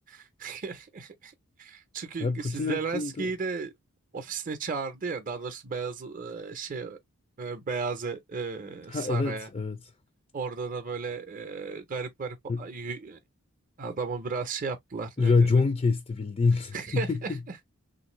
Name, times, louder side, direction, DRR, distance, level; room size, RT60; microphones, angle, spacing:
voice 1, 0.1-1.3 1.6-3.7 4.1-7.0 7.4-9.5 10.3-13.2 13.8-15.5 16.7-17.3, right 4 dB, 35° right, 0.6 m, -34 dB
voice 2, 2.2-3.3 8.9-9.8 12.5-12.6 15.2-17.4, left 4 dB, 30° left, 0.4 m, -26 dB
3.2 x 2.6 x 3.0 m
head